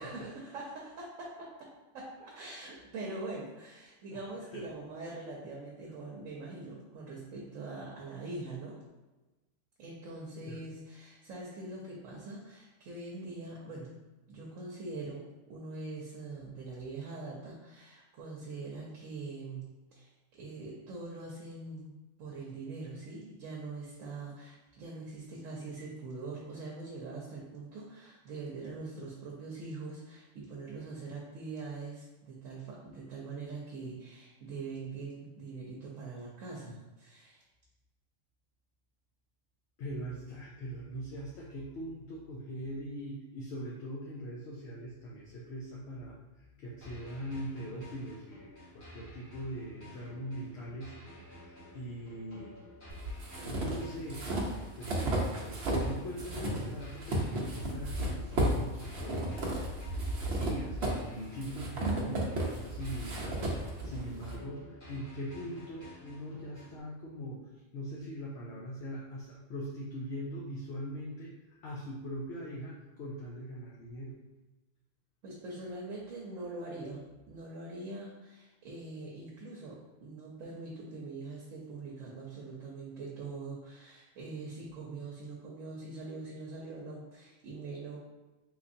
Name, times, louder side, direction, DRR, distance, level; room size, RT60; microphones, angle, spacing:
voice 1, 0.0-1.7 1.9-8.8 9.8-13.9 14.3-15.2 15.5-19.7 19.9-21.9 22.2-37.4 75.2-88.0, right 3 dB, 85° right, -4 dB, 1.1 m, -43 dB
voice 2, 4.1-4.6 10.5-10.6 39.8-50.9 51.4-52.5 53.4-54.4 54.8-59.4 59.9-67.4 67.7-71.3 71.6-74.2, equal, 65° left, -4 dB, 0.8 m, -41 dB
sound 1, 46.8-66.8, equal, 90° left, 1.9 m, -52 dB
sound 2, 52.9-55.9 56.2-64.3, right 1 dB, 60° right, 1.0 m, -33 dB
3.9 x 3.0 x 2.6 m, 1.1 s
omnidirectional pair, 1.3 m